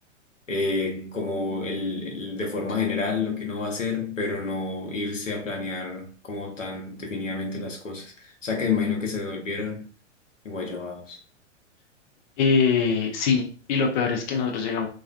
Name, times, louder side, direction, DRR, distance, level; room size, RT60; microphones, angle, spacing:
voice 1, 0.5-9.9 10.4-11.2, left 4 dB, 85° left, 0.8 m, -29 dB
voice 2, 12.4-14.9, left 5 dB, 40° left, 0.5 m, -23 dB
2.3 x 2.2 x 2.3 m
figure-of-eight pair, 105°, 37 cm